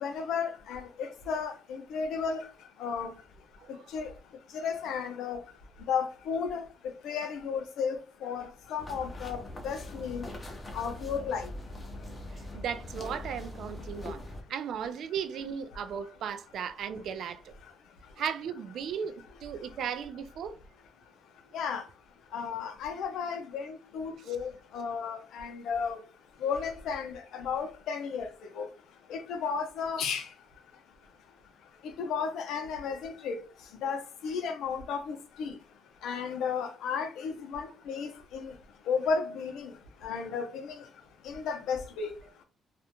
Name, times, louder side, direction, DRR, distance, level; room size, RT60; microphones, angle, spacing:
voice 1, 0.0-2.5 2.8-3.1 3.9-4.1 4.5-5.4 5.9-6.6 7.0-10.2 10.7-11.5 21.5-21.8 22.3-26.0 26.4-28.3 28.5-28.7 29.1-30.3 32.0-33.4 33.8-35.5 36.0-38.5 38.9-39.7 40.0-40.8 41.2-42.1, left 6 dB, 80° left, 0.5 m, -33 dB
sound 1, 8.8-14.4, left 1 dB, 25° left, 0.7 m, -42 dB
voice 2, 12.5-14.2 14.5-17.4 18.2-19.1 19.4-20.5, right 7 dB, 70° right, 0.3 m, -35 dB
2.4 x 2.1 x 2.9 m
cardioid pair, 90°, 0 cm